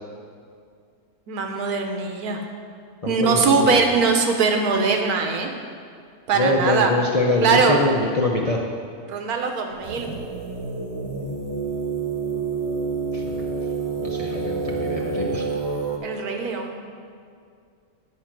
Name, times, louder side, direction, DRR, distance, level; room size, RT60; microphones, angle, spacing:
voice 1, 1.3-2.4 3.1-5.5 6.3-6.9 7.4-7.8 9.1-10.1 16.0-16.8, right 4 dB, 80° right, 4 dB, 1.4 m, -21 dB
voice 2, 3.0-3.8 6.3-8.6 13.1-13.5 14.0-15.5, left 2 dB, 40° left, -2 dB, 0.5 m, -24 dB
sound 1, 9.8-16.0, right 4 dB, 50° right, 1.2 m, -28 dB
8.3 x 6.3 x 5.9 m, 2.3 s
omnidirectional pair, 1.6 m